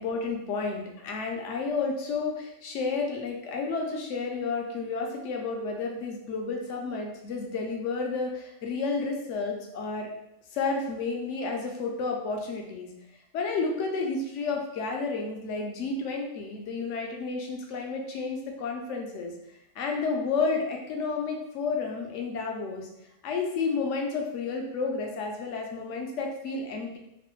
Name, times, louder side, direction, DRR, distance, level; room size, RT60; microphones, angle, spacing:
voice 1, 0.0-10.1 10.5-12.9 13.3-19.3 19.8-22.9 23.2-27.0, left 4 dB, 70° left, 2 dB, 0.9 m, -31 dB
3.1 x 2.0 x 2.9 m, 0.82 s
omnidirectional pair, 1.3 m